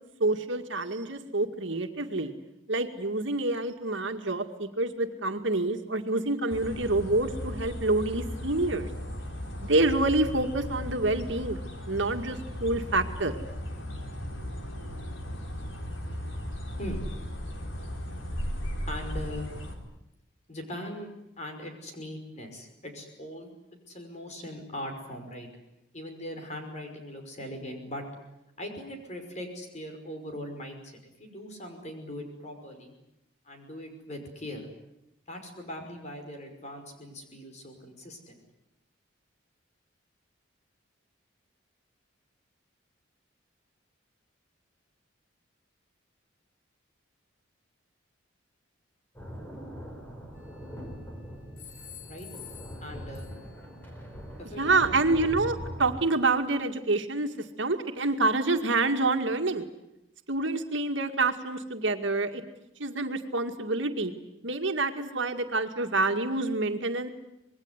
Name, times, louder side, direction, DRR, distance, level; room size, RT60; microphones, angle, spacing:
voice 1, 0.2-2.3 2.7-8.9 9.6-11.6 11.9-13.3 54.6-57.3 57.6-59.7 60.3-62.4 62.8-64.1 64.4-67.1, right 2 dB, 70° right, 5 dB, 2.1 m, -27 dB
sound 1, 6.5-19.8, equal, 80° left, 4.4 m, -36 dB
voice 2, 18.9-19.5 20.5-21.1 21.4-23.5 23.9-25.5 25.9-28.0 28.6-32.9 33.4-34.7 35.3-38.4 52.1-52.3 52.8-53.3 54.4-55.3, left 1 dB, 35° left, 4 dB, 5.5 m, -40 dB
sound 2, 49.1-56.0, equal, 10° left, 4.7 m, -41 dB
sound 3, 50.4-51.0 51.6-53.7, left 9 dB, 55° left, 6.2 m, -49 dB
26.0 x 21.5 x 9.7 m, 0.87 s
head